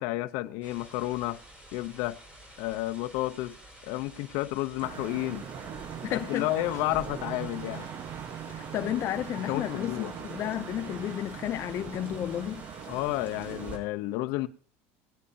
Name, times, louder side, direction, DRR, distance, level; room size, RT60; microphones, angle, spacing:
voice 1, 0.0-1.4 1.7-2.2 2.6-3.5 3.8-5.5 6.1-7.9 9.5-10.1 12.9-14.5, left 18 dB, 70° left, 0.7 m, -31 dB
sound 1, 0.6-13.8, right 1 dB, 20° right, 5.6 m, -50 dB
sound 2, 4.8-13.8, right 8 dB, 45° right, 1.1 m, -41 dB
voice 2, 6.0-6.5 8.5-12.7, left 12 dB, 45° left, 0.5 m, -32 dB
19.0 x 10.0 x 2.7 m
supercardioid pair, 115°, 6 cm